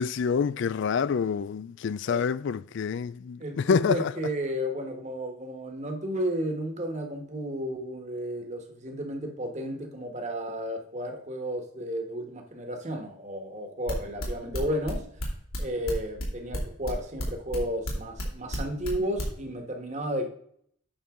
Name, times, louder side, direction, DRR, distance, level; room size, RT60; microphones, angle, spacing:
voice 1, 0.0-4.1, left 6 dB, 55° left, 0.3 m, -27 dB
voice 2, 3.4-15.0 15.6-20.3, equal, 30° right, 1.5 m, -33 dB
sound 1, 13.9-19.3, left 1 dB, 75° left, 2.7 m, -33 dB
9.0 x 6.1 x 3.8 m
head